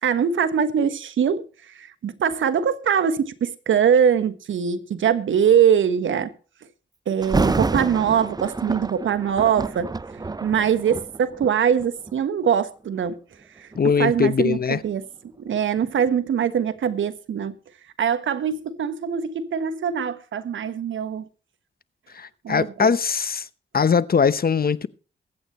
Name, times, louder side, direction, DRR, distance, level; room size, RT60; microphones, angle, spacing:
voice 1, 0.0-6.3 7.1-13.2 13.5-15.0 15.4-17.6 18.0-21.3 22.4-22.9, right 8 dB, 80° right, 1.3 m, -22 dB
Thunder, 7.2-12.2 12.8-13.1 13.7-16.5 16.9-17.0, right 3 dB, 20° right, 0.5 m, -29 dB
voice 2, 13.8-14.8 22.1-23.5 23.7-24.9, left 6 dB, 50° left, 0.9 m, -21 dB
22.5 x 8.8 x 3.2 m
cardioid pair, 50°, 20 cm